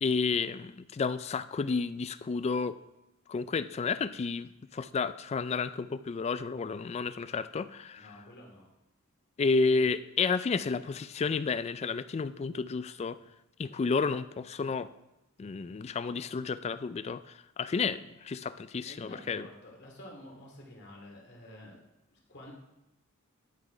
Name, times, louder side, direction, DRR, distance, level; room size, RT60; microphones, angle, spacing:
voice 1, 0.0-2.8 3.3-8.1 9.4-13.2 13.6-14.9 15.4-19.5, left 4 dB, 30° left, 14 dB, 0.3 m, -31 dB
voice 2, 8.0-8.7 18.8-21.8 22.1-22.5, left 1 dB, 55° left, -1 dB, 2.4 m, -50 dB
11.0 x 6.1 x 5.0 m, 0.91 s
head